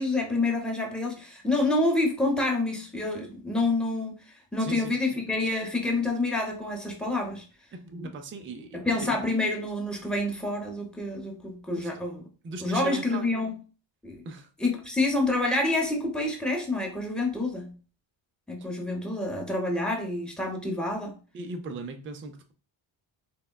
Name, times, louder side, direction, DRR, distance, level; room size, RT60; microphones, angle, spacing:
voice 1, 0.0-4.2 4.5-7.4 8.7-12.2 12.6-13.5 14.0-14.2 14.6-17.7 18.5-21.2, left 2 dB, ahead, 0 dB, 0.8 m, -28 dB
voice 2, 4.6-5.2 7.8-9.2 11.7-11.9 12.4-13.3 14.2-14.5 21.3-22.5, right 3 dB, 25° right, 5 dB, 0.4 m, -39 dB
3.5 x 2.2 x 2.2 m, 0.37 s
cardioid pair, 75°, 47 cm